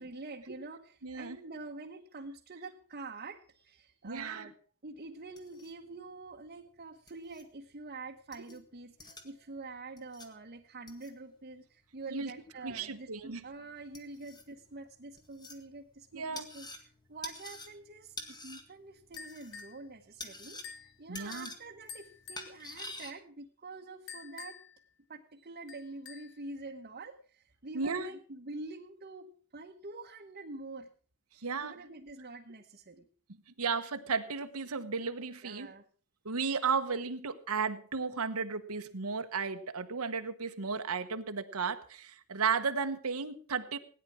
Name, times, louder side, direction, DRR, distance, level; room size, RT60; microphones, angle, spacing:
voice 1, 0.0-4.6 4.8-16.8 17.1-24.6 25.1-30.9 31.5-33.1 35.4-35.8, right 3 dB, 45° right, 1 dB, 1.2 m, -46 dB
voice 2, 1.0-1.4 4.0-4.5 12.1-12.3 12.6-13.4 16.1-16.5 21.1-21.5 27.7-28.1 31.4-31.7 33.6-35.7 36.2-43.8, right 5 dB, 75° right, 7 dB, 1.1 m, -34 dB
sound 1, 5.2-23.1, left 2 dB, 20° left, 1.9 m, -50 dB
sound 2, 19.2-19.8 20.6-21.0 21.9-22.5 24.1-24.8 25.7-26.4, left 6 dB, 60° left, 1.4 m, -48 dB
17.5 x 9.9 x 6.1 m, 0.42 s
head